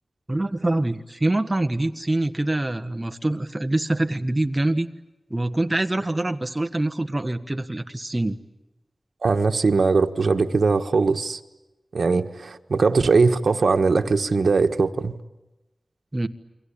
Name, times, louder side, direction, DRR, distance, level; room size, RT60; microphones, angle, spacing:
voice 1, 0.3-4.9 5.3-8.4 16.1-16.3, right 1 dB, 25° right, 1.5 m, -25 dB
voice 2, 9.2-11.4 11.9-15.2, right 4 dB, 80° right, 1.4 m, -20 dB
29.0 x 23.0 x 8.7 m
wide cardioid pair, 70°, 0 cm